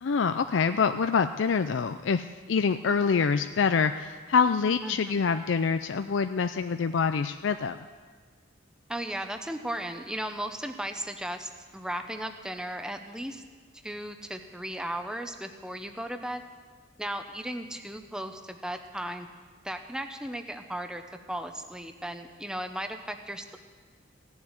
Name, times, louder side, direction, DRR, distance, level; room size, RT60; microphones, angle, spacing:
voice 1, 0.0-7.8, left 5 dB, 85° left, 9 dB, 0.5 m, -26 dB
voice 2, 4.8-5.3 8.9-13.4 13.8-16.4 17.0-19.3 19.6-21.0 21.3-23.6, right 1 dB, 5° right, 6 dB, 0.8 m, -36 dB
16.5 x 7.3 x 9.6 m, 1.5 s
head